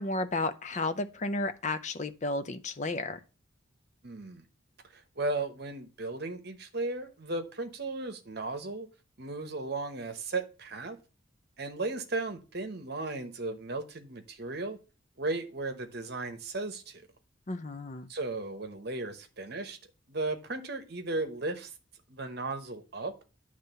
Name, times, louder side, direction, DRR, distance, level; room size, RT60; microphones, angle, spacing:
voice 1, 0.0-3.2 17.5-18.1, left 2 dB, 35° left, 0.6 m, -33 dB
voice 2, 4.0-4.4 4.9-8.9 9.2-11.0 11.6-14.8 15.2-17.0 18.1-19.8 20.1-21.7 22.1-23.1, right 2 dB, 50° right, 1.0 m, -35 dB
9.8 x 3.3 x 6.7 m
head